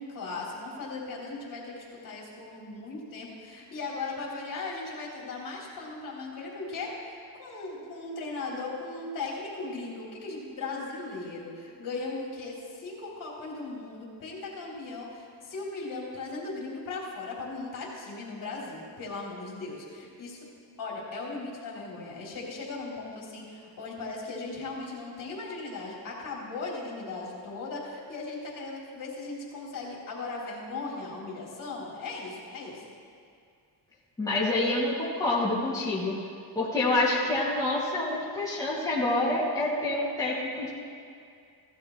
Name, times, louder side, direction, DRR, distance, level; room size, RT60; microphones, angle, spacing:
voice 1, 0.0-20.5 20.8-32.8, left 3 dB, 50° left, -4 dB, 3.3 m, -38 dB
voice 2, 34.2-36.1 36.5-40.7, left 2 dB, 10° left, -8 dB, 2.5 m, -27 dB
17.0 x 11.5 x 3.2 m, 2.3 s
cardioid pair, 120°, 41 cm